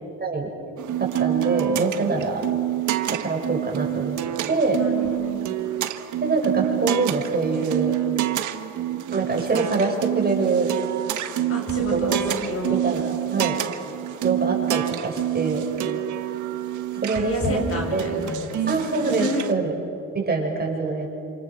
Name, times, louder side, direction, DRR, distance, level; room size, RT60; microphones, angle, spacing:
sound 1, 0.8-19.5, right 13 dB, 75° right, 1.6 m, -27 dB
voice 1, 1.0-2.4 3.2-4.2 4.5-4.8 6.2-7.9 9.1-10.7 11.9-12.2 12.7-13.6 14.2-15.6 17.0-17.6 17.9-18.1 18.7-19.8 20.1-21.1, right 3 dB, 30° right, 0 dB, 7.1 m, -24 dB
voice 2, 1.9-2.3 4.7-5.6 11.5-12.8 17.1-19.4, left 1 dB, 50° left, 1 dB, 7.7 m, -30 dB
28.5 x 27.5 x 6.6 m, 2.5 s
cardioid pair, 90°, 30 cm